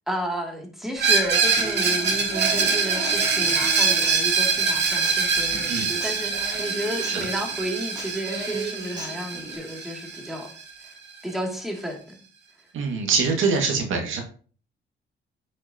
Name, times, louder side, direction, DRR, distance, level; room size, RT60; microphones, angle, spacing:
voice 1, 0.1-10.5 11.2-12.2, equal, ahead, 0 dB, 2.6 m, -32 dB
Screech, 1.0-10.6, right 5 dB, 60° right, 2.5 m, -24 dB
Human voice / Acoustic guitar, 1.6-9.6, right 3 dB, 20° right, 2.8 m, -36 dB
voice 2, 12.7-14.2, right 5 dB, 80° right, 2 dB, 2.1 m, -24 dB
8.8 x 6.4 x 2.9 m, 0.41 s
cardioid pair, 90°, 20 cm